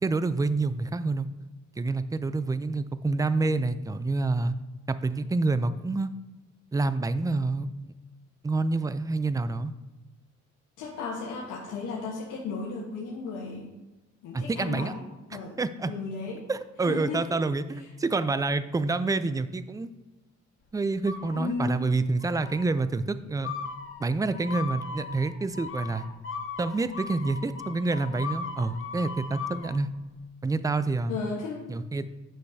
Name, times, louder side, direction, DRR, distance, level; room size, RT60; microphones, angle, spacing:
voice 1, 0.0-1.3 1.8-4.5 4.9-6.1 6.7-7.7 8.4-9.7 14.3-14.9 15.6-15.9 16.5-19.9 20.7-23.5 24.0-26.0 26.6-29.9 30.4-31.2 31.7-32.1, right 3 dB, 10° right, 13 dB, 0.4 m, -27 dB
voice 2, 10.8-13.7 14.2-15.0 15.3-15.6 15.9-16.4 16.8-17.5 17.8-17.9 21.3-21.8 31.1-31.7, left 4 dB, 90° left, -3 dB, 1.3 m, -34 dB
sound 1, 21.1-21.8 22.2-22.7 23.4-29.7, left 5 dB, 45° left, 1.2 m, -38 dB
9.7 x 6.5 x 2.7 m, 1.1 s
cardioid pair, 90°, 30 cm